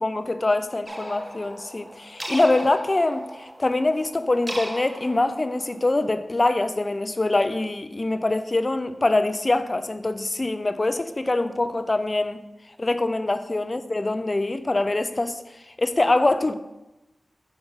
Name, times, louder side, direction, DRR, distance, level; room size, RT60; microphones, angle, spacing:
voice 1, 0.0-12.4 12.8-16.5, left 2 dB, 35° left, 10 dB, 0.4 m, -24 dB
sound 1, 0.9-6.1, right 1 dB, 15° right, 0.8 m, -38 dB
5.9 x 3.6 x 5.5 m, 0.96 s
wide cardioid pair, 80°, 0 cm